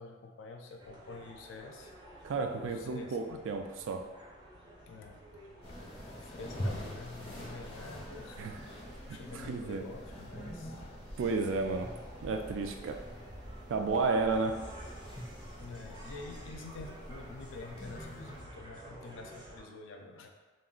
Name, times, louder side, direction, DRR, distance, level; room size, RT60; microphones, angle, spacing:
voice 1, 0.0-1.9 2.6-3.4 4.8-5.2 5.8-5.9 6.3-10.8 15.3-20.3, left 3 dB, 90° left, 3 dB, 0.4 m, -48 dB
sound 1, 0.8-19.6, right 1 dB, 25° right, 0.4 m, -52 dB
voice 2, 2.2-4.0 8.4-8.6 9.3-9.9 11.2-11.9 12.2-13.0 13.7-14.5, right 4 dB, 85° right, 5 dB, 0.3 m, -32 dB
sound 2, 5.6-18.4, equal, 30° left, 0.5 m, -45 dB
2.4 x 2.1 x 3.6 m, 1.3 s
head